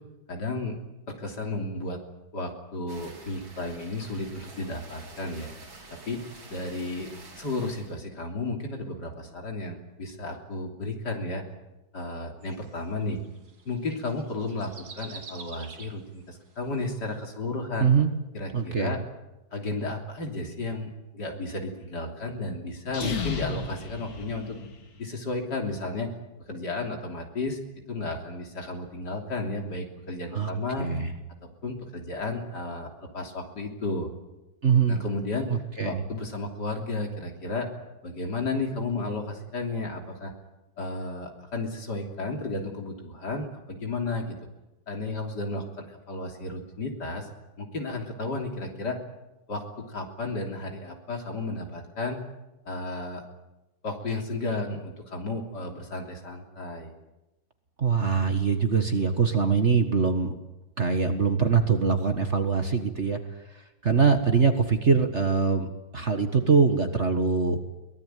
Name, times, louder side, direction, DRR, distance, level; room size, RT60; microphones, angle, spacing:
voice 1, 0.3-0.8 1.1-2.0 2.3-5.5 5.9-6.2 6.5-7.1 7.4-11.4 11.9-13.2 13.7-17.9 18.3-19.0 19.5-24.6 25.0-26.1 26.5-27.6 27.9-30.9 31.4-34.1 34.9-35.6 35.8-37.7 38.0-40.3 40.8-44.4 44.9-47.3 47.6-49.0 49.5-52.2 52.7-53.2 53.8-56.9, left 2 dB, 55° left, 3 dB, 3.8 m, -33 dB
sound 1, 2.9-8.0, right 3 dB, 85° right, 4.3 m, -48 dB
sound 2, 12.4-16.2 16.7-16.8, right 5 dB, 55° right, 2.6 m, -46 dB
voice 2, 17.8-18.1 18.5-18.9 30.3-30.5 30.8-31.1 34.6-35.0 35.5-36.0 57.8-60.3 60.8-63.2 63.5-67.6, right 5 dB, 35° right, 6 dB, 1.7 m, -23 dB
sound 3, 22.8-25.0, left 4 dB, 75° left, 3.1 m, -34 dB
23.0 x 19.0 x 9.2 m, 0.98 s
omnidirectional pair, 2.2 m